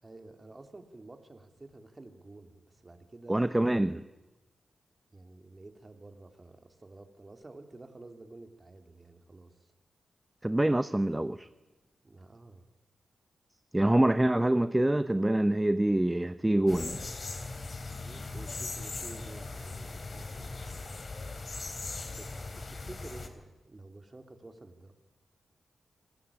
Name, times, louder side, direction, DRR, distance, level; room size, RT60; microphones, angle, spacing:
voice 1, 0.0-3.5 5.1-9.7 12.0-12.6 17.9-20.9 22.1-24.9, right 2 dB, 30° right, 3.2 m, -51 dB
voice 2, 3.3-4.0 10.4-11.5 13.7-17.0, right 1 dB, 15° right, 0.8 m, -26 dB
sound 1, 16.7-23.3, left 3 dB, 45° left, 3.3 m, -39 dB
27.0 x 18.0 x 8.6 m
cardioid pair, 55°, 0 cm